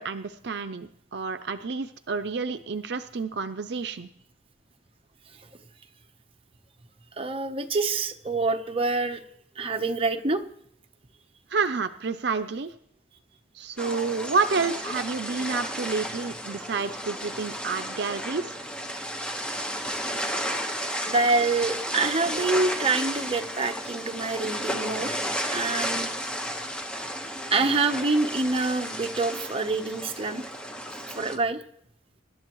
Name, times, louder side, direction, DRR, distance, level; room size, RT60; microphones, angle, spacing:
voice 1, 0.0-4.1 11.5-12.7 13.5-18.6, right 4 dB, 65° right, 10 dB, 0.6 m, -29 dB
voice 2, 7.2-9.2 9.6-10.4 21.1-25.2 25.5-26.1 27.5-30.4 31.1-31.6, right 3 dB, 30° right, 6 dB, 0.9 m, -26 dB
sound 1, 13.8-31.4, equal, 5° left, 1.2 m, -33 dB
25.0 x 11.5 x 3.1 m, 0.70 s
head